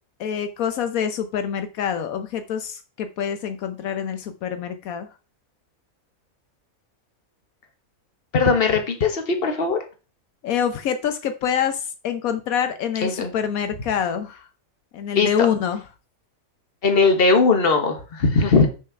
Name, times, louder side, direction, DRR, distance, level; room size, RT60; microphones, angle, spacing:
voice 1, 0.2-5.1 10.4-14.5 14.9-15.8, left 8 dB, 80° left, 9 dB, 1.2 m, -26 dB
voice 2, 8.3-9.8 13.0-13.3 15.1-15.3 16.8-18.7, left 4 dB, 45° left, 5 dB, 1.5 m, -19 dB
6.5 x 5.1 x 5.7 m, 0.33 s
omnidirectional pair, 1.5 m